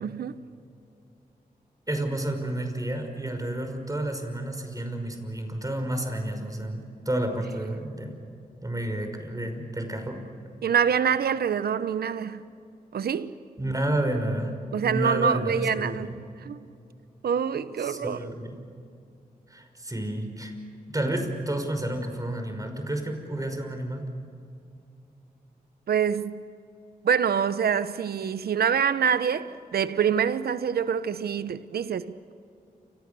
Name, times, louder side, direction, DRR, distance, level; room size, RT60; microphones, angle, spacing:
voice 1, 0.0-0.4 10.6-12.4 12.9-13.4 14.7-16.1 16.4-16.7 17.2-18.2 25.9-26.4 27.0-32.3, right 7 dB, 85° right, 0.9 m, -26 dB
voice 2, 1.9-8.1 8.6-10.3 13.6-14.6 14.8-16.2 17.8-18.6 19.5-20.5 20.9-24.1, right 1 dB, 20° right, 5.6 m, -30 dB
29.5 x 26.0 x 7.0 m
cardioid pair, 50°, 16 cm